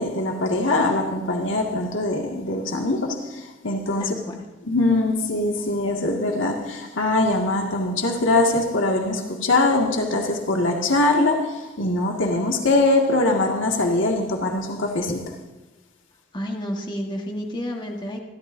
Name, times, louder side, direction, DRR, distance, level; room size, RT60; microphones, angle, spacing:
voice 1, 0.0-4.1 4.6-15.2, left 2 dB, 80° left, 1 dB, 2.0 m, -22 dB
voice 2, 4.0-4.4 16.3-18.2, equal, 25° left, 1 dB, 1.5 m, -30 dB
26.5 x 12.0 x 2.7 m, 1.2 s
head